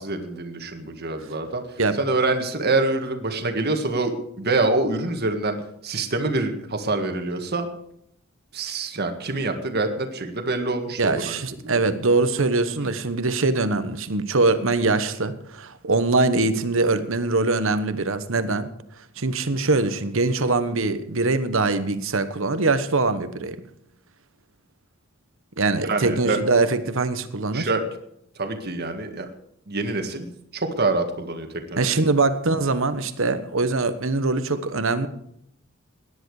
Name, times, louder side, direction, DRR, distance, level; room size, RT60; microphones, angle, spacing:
voice 1, 0.0-1.6 1.9-5.6 5.8-7.7 8.5-11.7 12.8-12.9 25.9-26.4 27.5-27.8 28.3-29.3 29.7-31.9, right 2 dB, 50° right, 5 dB, 1.8 m, -26 dB
voice 2, 11.0-18.7 19.2-23.6 25.6-27.7 31.8-35.1, right 3 dB, 65° right, 12 dB, 1.2 m, -22 dB
17.5 x 10.5 x 4.9 m, 0.75 s
head